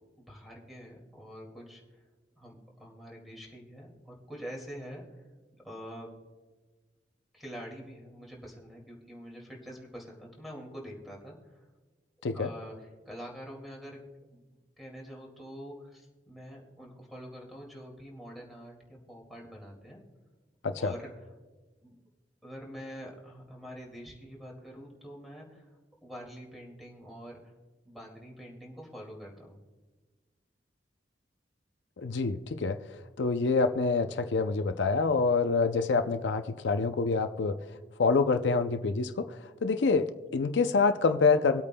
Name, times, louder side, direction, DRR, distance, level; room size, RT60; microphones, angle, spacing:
voice 1, 0.2-2.0 2.4-5.2 5.6-6.1 7.3-11.6 12.3-14.0 14.3-14.4 14.8-20.0 20.8-21.2 21.8-22.0 22.4-25.8 26.0-27.5 27.8-29.6, equal, ahead, -1 dB, 2.2 m, -45 dB
voice 2, 32.0-32.8 33.2-37.6 38.0-39.4 39.6-41.6, left 4 dB, 80° left, 8 dB, 0.5 m, -26 dB
25.5 x 8.5 x 2.2 m, 1.3 s
head